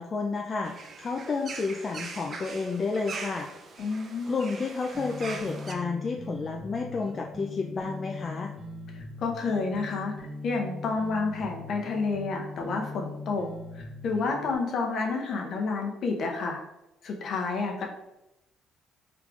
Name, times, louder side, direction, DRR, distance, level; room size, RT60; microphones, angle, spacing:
voice 1, 0.0-3.5 4.3-8.5, left 4 dB, 40° left, 1 dB, 0.4 m, -31 dB
sound 1, 0.6-5.7, right 4 dB, 50° right, 0.5 m, -41 dB
voice 2, 3.8-4.4 8.9-13.5 13.7-16.6 17.0-17.9, left 4 dB, 60° left, 1 dB, 0.8 m, -30 dB
sound 2, 4.9-14.5, left 2 dB, ahead, 1.2 m, -41 dB
4.6 x 3.5 x 2.4 m, 0.91 s
hypercardioid pair, 55°, 0 cm